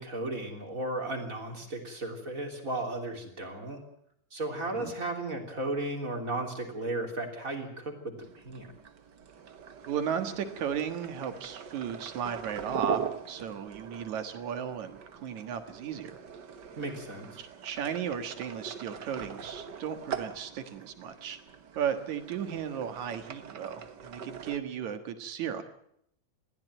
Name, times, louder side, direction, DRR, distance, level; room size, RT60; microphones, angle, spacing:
voice 1, 0.0-3.8 4.3-8.2 8.4-8.7 16.8-17.4, right 2 dB, 25° right, 4 dB, 3.5 m, -35 dB
sound 1, 8.2-24.6, right 7 dB, 45° right, 1.6 m, -41 dB
voice 2, 9.9-16.2 17.4-21.4 21.8-25.6, right 8 dB, 75° right, 8 dB, 2.9 m, -35 dB
21.0 x 15.0 x 9.1 m, 0.73 s
omnidirectional pair, 3.3 m